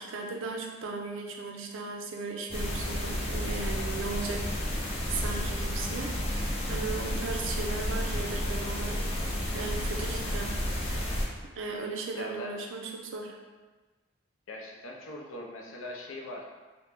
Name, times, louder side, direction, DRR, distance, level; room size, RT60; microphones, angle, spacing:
voice 1, 0.0-6.2 6.7-9.1 9.5-10.5 11.6-13.3, right 4 dB, 70° right, 1 dB, 0.4 m, -37 dB
sound 1, 2.5-11.3, left 1 dB, 30° left, 0.4 m, -31 dB
voice 2, 12.1-12.5 14.5-16.5, left 1 dB, 80° left, -1 dB, 0.5 m, -41 dB
2.9 x 2.0 x 3.3 m, 1.3 s
head